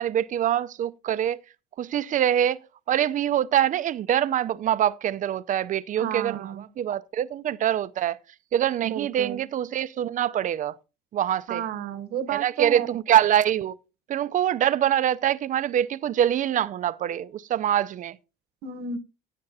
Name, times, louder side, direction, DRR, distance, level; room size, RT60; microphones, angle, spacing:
voice 1, 0.0-1.4 1.8-2.6 2.9-8.2 8.5-10.8 11.1-11.6 12.3-13.8 14.1-18.2, right 10 dB, 50° right, 0.6 m, -24 dB
voice 2, 6.0-6.6 8.8-9.4 11.5-12.9 18.6-19.0, right 8 dB, 70° right, 1.1 m, -31 dB
16.5 x 7.6 x 2.8 m
cardioid pair, 110°, 17 cm